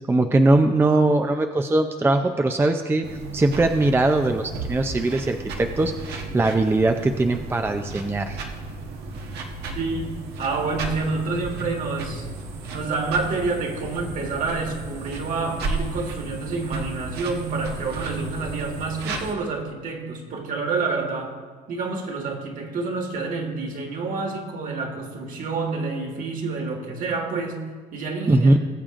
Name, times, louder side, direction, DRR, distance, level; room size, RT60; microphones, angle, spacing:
voice 1, 0.1-8.4 28.3-28.6, right 2 dB, 15° right, 6 dB, 0.5 m, -21 dB
sound 1, 3.0-19.3, right 3 dB, 75° right, 1.2 m, -34 dB
voice 2, 9.7-12.3 12.7-21.4 21.7-28.5, right 3 dB, 55° right, 2 dB, 1.7 m, -28 dB
20.5 x 7.2 x 2.5 m, 1.5 s
cardioid pair, 110°, 17 cm